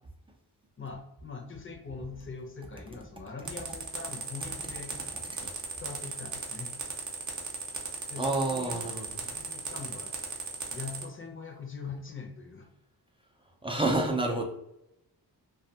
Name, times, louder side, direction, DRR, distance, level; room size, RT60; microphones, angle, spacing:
voice 1, 0.8-4.9 5.8-6.7 8.1-8.9 9.3-10.1 10.7-12.7, left 4 dB, 30° left, 3 dB, 0.6 m, -42 dB
sound 1, 3.5-11.0, right 4 dB, 45° right, 0.7 m, -36 dB
voice 2, 8.2-9.2 13.6-14.4, right 2 dB, 15° right, 0 dB, 0.4 m, -29 dB
2.4 x 2.3 x 2.7 m, 0.84 s
cardioid pair, 75°, 42 cm